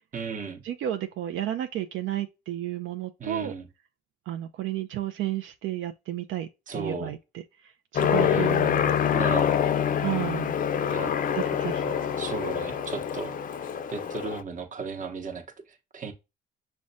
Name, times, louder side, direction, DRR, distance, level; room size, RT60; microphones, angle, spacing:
voice 1, 0.1-0.6 3.2-3.7 6.7-7.2 8.2-8.6 9.1-9.5 10.9-11.1 12.2-13.3 13.9-16.1, right 4 dB, 40° right, 0.8 m, -35 dB
voice 2, 0.6-3.5 4.3-6.5 6.7-7.2 7.9-8.9 10.0-10.6 11.3-11.9, right 12 dB, 80° right, 0.4 m, -32 dB
Aircraft, 8.0-14.4, left 8 dB, 45° left, 0.4 m, -26 dB
6.0 x 2.2 x 2.6 m
cardioid pair, 90°, 20 cm